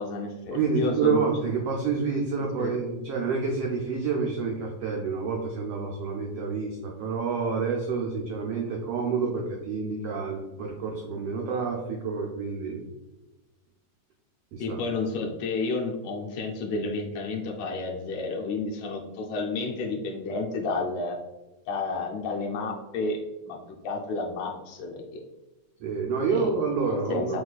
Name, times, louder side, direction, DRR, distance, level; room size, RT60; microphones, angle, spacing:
voice 1, 0.0-1.3 2.6-2.8 14.6-21.2 21.7-23.2 23.5-23.6 23.8-25.2 26.3-26.5 26.9-27.4, left 3 dB, 75° left, 0 dB, 1.7 m, -31 dB
voice 2, 0.5-12.8 14.5-14.8 25.8-27.4, right 5 dB, 85° right, -1 dB, 1.3 m, -28 dB
6.1 x 3.1 x 2.3 m, 1.1 s
omnidirectional pair, 3.4 m